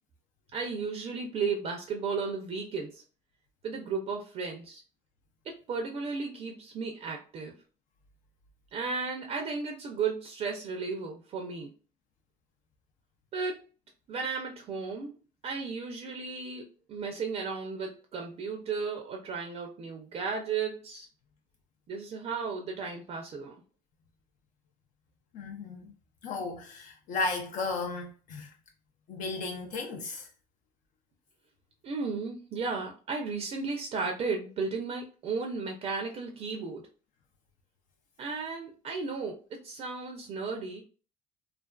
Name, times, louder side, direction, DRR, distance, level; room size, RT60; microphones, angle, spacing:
voice 1, 0.5-3.0 3.6-4.8 5.5-7.5 8.7-11.7 13.3-13.6 14.1-15.1 15.4-21.1 21.9-23.6 31.8-36.8 38.2-40.8, right 4 dB, 45° right, 0.5 m, -34 dB
voice 2, 25.3-25.9 26.2-28.5 29.1-30.3, left 3 dB, 60° left, 0.5 m, -34 dB
2.4 x 2.3 x 2.3 m
cardioid pair, 120°, 15 cm